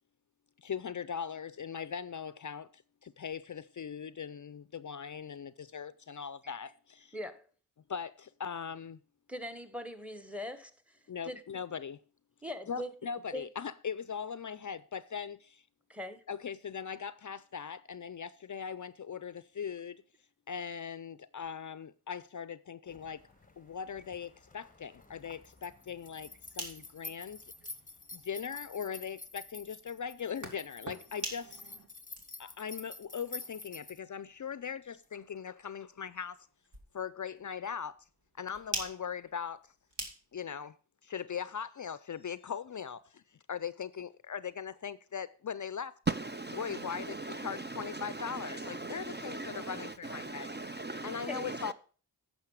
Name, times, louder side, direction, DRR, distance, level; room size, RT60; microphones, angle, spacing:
voice 1, 0.6-7.2 7.9-9.0 11.1-12.0 12.7-15.6 16.3-20.0 20.5-23.2 23.6-27.4 28.1-31.6 32.4-36.5 36.9-38.0 38.4-39.7 40.3-40.7 41.0-43.2 43.5-45.9 46.6-50.5 51.0-51.7, left 7 dB, 45° left, 0.5 m, -40 dB
voice 2, 7.1-7.5 9.3-11.0 11.2-11.4 12.4-12.9 13.3-13.5 15.9-16.2 51.3-51.7, left 1 dB, 5° right, 1.1 m, -41 dB
sound 1, 22.9-34.0, left 2 dB, 20° left, 0.8 m, -49 dB
sound 2, 23.2-31.9, right 1 dB, 45° right, 2.1 m, -56 dB
sound 3, 26.3-40.6, right 2 dB, 75° right, 2.3 m, -48 dB
voice 3, 46.1-51.7, right 3 dB, 25° right, 0.5 m, -39 dB
9.7 x 6.4 x 4.7 m
cardioid pair, 45°, 41 cm